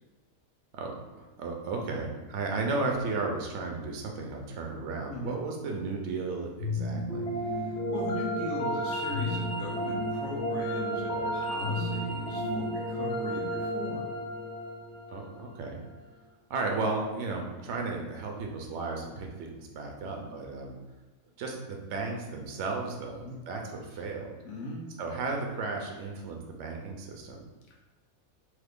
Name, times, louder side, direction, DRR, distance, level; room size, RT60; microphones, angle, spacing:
voice 1, 0.7-7.3 11.1-11.3 15.1-15.8 16.5-20.8 21.4-24.4 25.0-27.4, right 3 dB, 65° right, 1 dB, 0.8 m, -34 dB
voice 2, 5.1-5.4 7.3-14.1 20.0-20.4 23.2-23.4 23.9-24.0 24.4-24.9, left 2 dB, 80° left, -2 dB, 1.1 m, -40 dB
sound 1, 6.6-15.7, equal, 60° left, 0.9 m, -32 dB
3.0 x 2.4 x 3.5 m, 1.2 s
omnidirectional pair, 1.5 m